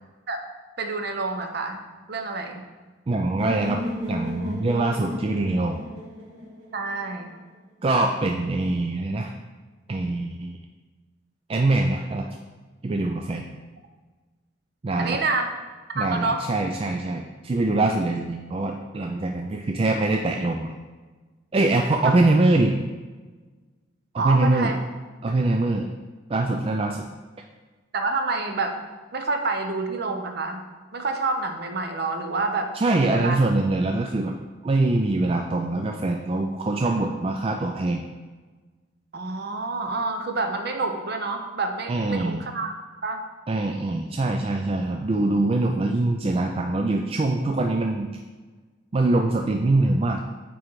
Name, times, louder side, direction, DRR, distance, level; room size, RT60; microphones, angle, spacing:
voice 1, 0.8-2.7 6.7-7.3 15.0-15.5 15.9-16.5 22.0-22.1 24.2-24.8 27.9-28.8 29.1-33.4 39.1-42.7 43.0-43.2, right 3 dB, 55° right, 5 dB, 0.7 m, -28 dB
voice 2, 3.1-3.8 4.1-5.8 7.8-9.3 9.9-10.6 11.5-12.3 12.8-13.4 14.8-15.2 16.0-20.7 21.5-22.8 24.1-24.8 25.2-25.9 26.3-27.1 32.7-34.3 34.6-38.1 41.9-42.5 43.5-48.1 48.9-50.2, right 2 dB, 30° right, 2 dB, 0.3 m, -23 dB
sound 1, 3.4-7.3, left 1 dB, 75° right, 1.6 m, -34 dB
8.8 x 3.2 x 4.7 m, 1.3 s
head